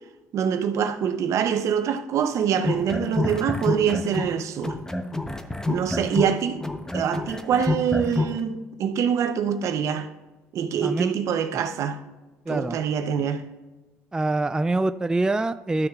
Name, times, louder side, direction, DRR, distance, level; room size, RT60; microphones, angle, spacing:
voice 1, 0.3-4.8 5.7-6.6 6.9-10.1 10.5-12.0 12.5-13.5, right 8 dB, 65° right, 0.7 m, -25 dB
sound 1, 2.5-4.3 4.6-8.4, left 2 dB, 10° left, 0.8 m, -27 dB
voice 2, 10.8-11.1 12.5-12.8 14.1-15.9, right 2 dB, 15° right, 0.3 m, -24 dB
13.0 x 6.3 x 2.4 m
supercardioid pair, 75°, 6 cm